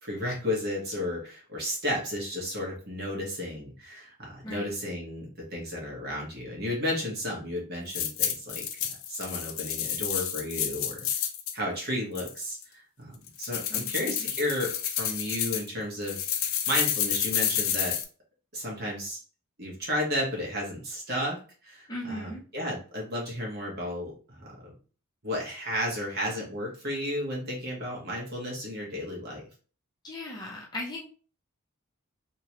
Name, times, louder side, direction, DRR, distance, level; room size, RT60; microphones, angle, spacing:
voice 1, 0.0-8.6 8.9-11.1 11.5-16.2 16.7-17.9 18.5-19.2 19.6-24.7 25.2-29.4, left 1 dB, 45° right, -2 dB, 1.3 m, -33 dB
voice 2, 4.4-4.8 13.7-14.3 21.9-22.4 30.0-31.0, left 1 dB, 20° left, -3 dB, 0.7 m, -38 dB
sound 1, 7.9-11.5 12.2-12.6 13.3-15.7 16.1-18.0, left 9 dB, 65° left, 0.5 m, -30 dB
3.0 x 2.9 x 2.9 m, 0.38 s
head